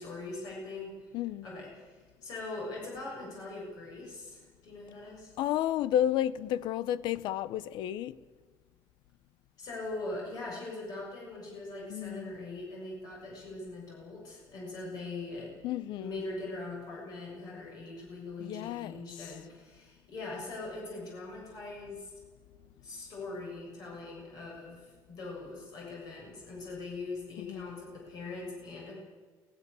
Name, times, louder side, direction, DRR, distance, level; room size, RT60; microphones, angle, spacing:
voice 1, 0.0-1.1 1.4-5.3 9.6-15.5 16.0-22.1 22.8-28.9, left 2 dB, 50° left, 7.1 m, -41 dB
voice 2, 1.1-1.5 5.4-8.2 11.9-12.4 15.6-16.2 18.4-19.3 27.4-27.7, left 11 dB, 70° left, 0.8 m, -32 dB
22.0 x 17.5 x 7.0 m
cardioid pair, 155°, 8 cm